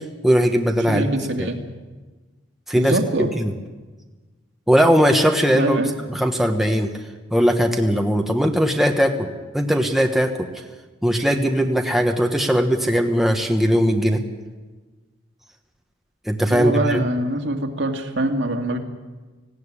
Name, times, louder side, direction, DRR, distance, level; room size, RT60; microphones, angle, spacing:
voice 1, 0.0-1.1 1.4-1.5 2.7-3.0 3.4-3.5 4.7-5.8 6.1-6.9 7.3-10.5 11.0-14.2 16.3-17.0, equal, ahead, 3 dB, 1.2 m, -19 dB
voice 2, 0.9-1.6 2.7-3.3 5.5-6.0 16.5-18.8, right 2 dB, 60° right, 3 dB, 2.1 m, -23 dB
18.5 x 16.5 x 9.9 m, 1.3 s
head